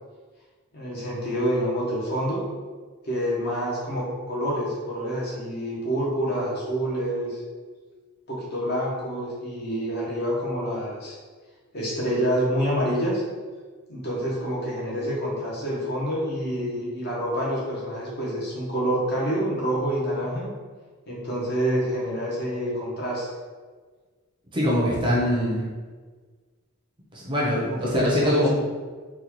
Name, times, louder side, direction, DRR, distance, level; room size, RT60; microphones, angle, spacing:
voice 1, 0.7-2.4 3.0-7.4 8.3-11.1 11.7-13.2 13.9-20.5 21.1-23.3 27.6-28.5, equal, 50° left, -6 dB, 1.0 m, -27 dB
voice 2, 24.5-25.6 27.1-28.5, equal, 20° right, -5 dB, 0.6 m, -23 dB
3.9 x 2.3 x 2.9 m, 1.4 s
head